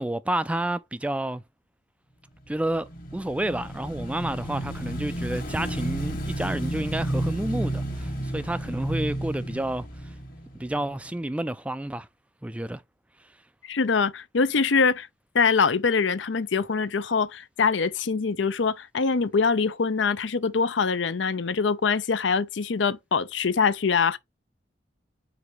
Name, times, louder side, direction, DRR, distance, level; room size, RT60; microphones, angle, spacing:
voice 1, 0.0-1.4 2.5-2.9 3.1-9.9 10.5-12.1 12.4-12.8, right 1 dB, 5° right, 0.3 m, -30 dB
Motorcycle / Engine, 2.5-11.0, right 1 dB, 50° left, 1.5 m, -32 dB
voice 2, 13.7-15.1 15.3-24.2, left 5 dB, 80° left, 0.6 m, -24 dB
4.9 x 4.2 x 4.8 m
head